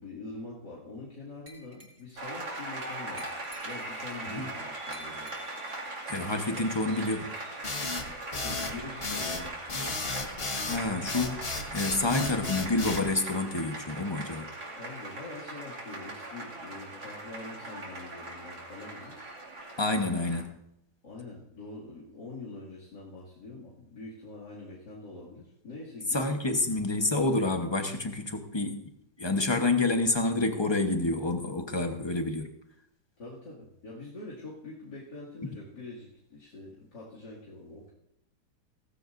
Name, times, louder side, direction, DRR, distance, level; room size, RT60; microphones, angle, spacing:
voice 1, 0.0-3.3 3.6-5.3 6.5-6.8 8.4-10.0 14.7-19.2 21.0-26.4 33.2-37.9, left 2 dB, 85° left, -5 dB, 3.1 m, -44 dB
Glass, 1.5-2.2 3.2-4.1 4.9-5.8, equal, 25° right, 2.6 m, -50 dB
Applause, 2.2-20.4, right 2 dB, 70° right, 3.1 m, -40 dB
voice 2, 6.1-7.3 10.6-11.4 11.7-14.5 19.8-20.6 26.1-28.8 29.2-32.5, left 2 dB, 20° left, 5 dB, 0.9 m, -28 dB
sound 1, 7.6-13.1, left 3 dB, 40° left, 1.5 m, -34 dB
16.5 x 15.0 x 2.6 m, 0.81 s
omnidirectional pair, 1.8 m